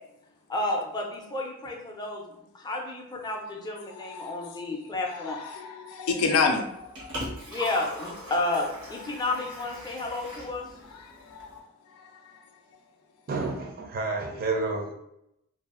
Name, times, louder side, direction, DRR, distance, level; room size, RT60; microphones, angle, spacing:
voice 1, 0.5-5.4 7.5-10.7, left 2 dB, 20° left, 0 dB, 0.4 m, -31 dB
voice 2, 4.0-4.6 5.1-7.2 10.9-12.5, left 4 dB, 80° left, 3 dB, 0.4 m, -30 dB
Liquid, 6.6-11.6, left 1 dB, 85° right, 1.1 m, -40 dB
voice 3, 13.3-14.9, right 3 dB, 45° right, 2 dB, 0.5 m, -30 dB
2.6 x 2.3 x 2.4 m, 0.81 s
head